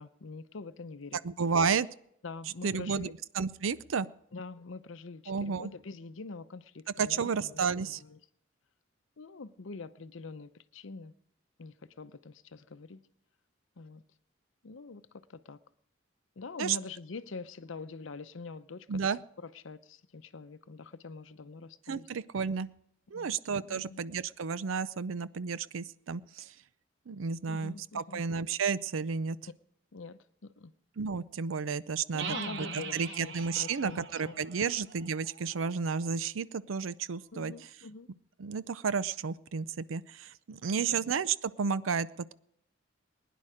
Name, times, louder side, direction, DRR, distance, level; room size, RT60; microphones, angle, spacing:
voice 1, 0.0-1.2 2.2-3.1 4.3-8.2 9.2-11.1 11.6-13.0 13.8-14.0 14.6-15.0 15.3-15.6 16.4-19.1 19.4-22.1 23.1-23.4 23.6-24.0 27.5-28.2 29.9-30.7 32.1-34.7 37.3-38.1 40.7-41.1, left 4 dB, 75° left, 0.7 m, -45 dB
voice 2, 1.2-1.9 2.6-3.1 3.3-4.1 5.3-5.7 7.0-8.0 16.6-16.8 18.9-19.2 21.9-22.7 23.1-26.5 27.1-29.4 31.0-37.5 38.4-42.3, right 5 dB, 85° right, 0.5 m, -32 dB
sound 1, 32.2-35.8, right 5 dB, 60° right, 1.1 m, -42 dB
21.0 x 10.0 x 5.0 m
head